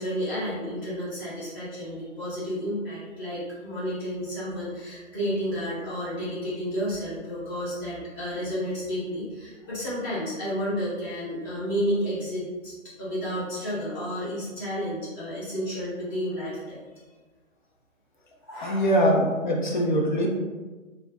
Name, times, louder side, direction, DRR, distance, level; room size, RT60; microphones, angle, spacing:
voice 1, 0.0-12.7 13.0-17.0 18.4-19.0, equal, 15° left, -9 dB, 0.9 m, -31 dB
voice 2, 18.6-20.3, equal, 40° left, -1 dB, 0.5 m, -22 dB
2.3 x 2.1 x 3.8 m, 1.3 s
hypercardioid pair, 150°, 39 cm